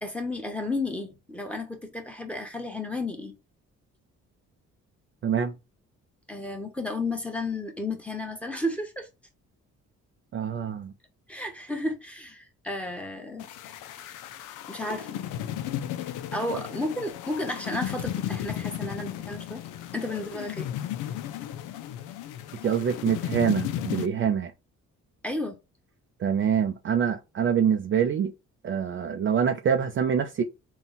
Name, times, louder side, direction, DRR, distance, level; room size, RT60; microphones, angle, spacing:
voice 1, 0.0-3.3 6.3-9.1 11.3-13.5 14.7-15.1 16.3-19.6 19.9-20.7 25.2-25.6, left 2 dB, 5° left, 1.1 m, -32 dB
voice 2, 5.2-5.5 10.3-10.9 22.6-24.5 26.2-28.3 28.6-30.4, right 7 dB, 40° right, 0.5 m, -25 dB
sound 1, 13.4-24.1, left 11 dB, 85° left, 0.5 m, -34 dB
3.9 x 2.3 x 4.0 m
cardioid pair, 90°, 30 cm